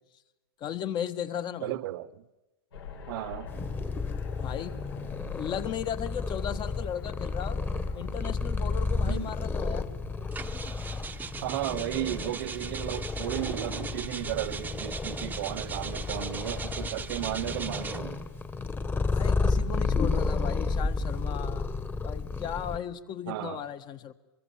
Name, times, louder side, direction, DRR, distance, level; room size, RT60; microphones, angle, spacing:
voice 1, 0.6-1.7 4.4-4.8 5.3-7.6 7.9-9.9 18.9-21.7 22.0-24.1, left 9 dB, 35° left, 1.5 m, -36 dB
voice 2, 1.6-2.2 3.1-3.5 9.1-9.3 11.4-18.2 23.3-23.6, right 15 dB, 60° right, 1.0 m, -34 dB
sound 1, 2.7-21.3, left 5 dB, 80° left, 7.8 m, -49 dB
Purr, 3.5-22.8, left 3 dB, 15° left, 1.6 m, -32 dB
sound 2, 10.3-18.2 19.1-21.6, right 5 dB, 15° right, 1.0 m, -40 dB
26.0 x 22.5 x 7.2 m
hypercardioid pair, 120°, 13 cm